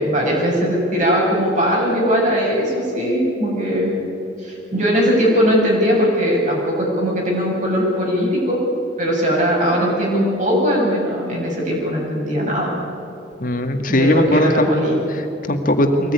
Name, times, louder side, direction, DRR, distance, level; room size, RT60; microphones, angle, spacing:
voice 1, 0.0-3.9 4.4-8.6 9.0-12.7 13.9-14.9, equal, 45° right, -3 dB, 7.6 m, -19 dB
voice 2, 13.4-14.7 15.1-16.1, left 1 dB, 50° left, 5 dB, 2.0 m, -18 dB
23.5 x 19.0 x 9.8 m, 2.8 s
head